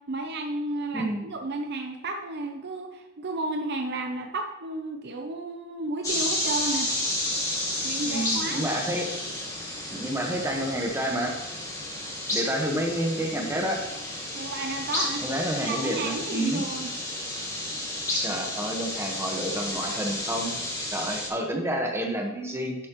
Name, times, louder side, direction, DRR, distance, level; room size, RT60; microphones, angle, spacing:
voice 1, 0.1-6.9 7.8-8.7 14.3-15.3 15.6-16.9, right 2 dB, 50° right, 4 dB, 0.7 m, -32 dB
voice 2, 0.9-1.3 8.0-9.1 9.9-11.4 12.3-13.9 15.2-16.6 18.1-20.6 20.9-22.8, right 1 dB, 10° right, 1 dB, 1.3 m, -29 dB
sound 1, 6.0-21.3, left 1 dB, 15° left, 2.4 m, -31 dB
10.5 x 8.5 x 3.1 m, 1.1 s
head